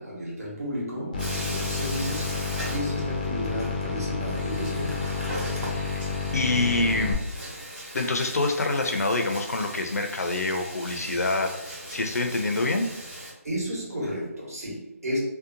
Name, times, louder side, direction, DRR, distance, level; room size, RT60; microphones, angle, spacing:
voice 1, 0.0-5.8 13.4-15.2, equal, 70° right, -5 dB, 1.3 m, -33 dB
sound 1, 1.1-7.1, left 4 dB, 30° left, 0.4 m, -30 dB
Bathtub (filling or washing), 1.2-3.5 3.7-3.8 4.3-13.3, right 1 dB, 35° right, 1.0 m, -39 dB
voice 2, 6.3-7.2 7.9-11.5 11.9-12.9, left 2 dB, 80° left, 3 dB, 0.5 m, -26 dB
2.7 x 2.1 x 2.5 m, 0.89 s
figure-of-eight pair, 165°, 8 cm